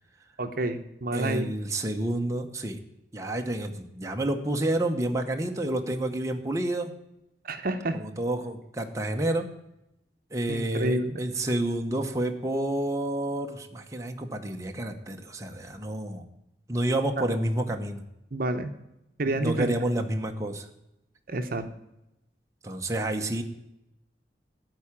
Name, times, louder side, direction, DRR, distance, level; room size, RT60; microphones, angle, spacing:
voice 1, 0.4-1.5 7.4-8.0 10.5-11.2 17.2-17.3 18.3-18.7 19.2-19.7 21.3-21.7, right 2 dB, 55° right, 7 dB, 0.9 m, -29 dB
voice 2, 1.1-2.8 3.1-6.9 7.9-9.5 10.3-16.3 16.7-18.0 19.2-20.7 22.6-23.4, right 1 dB, 20° right, 3 dB, 0.9 m, -29 dB
13.0 x 4.8 x 8.8 m, 0.87 s
head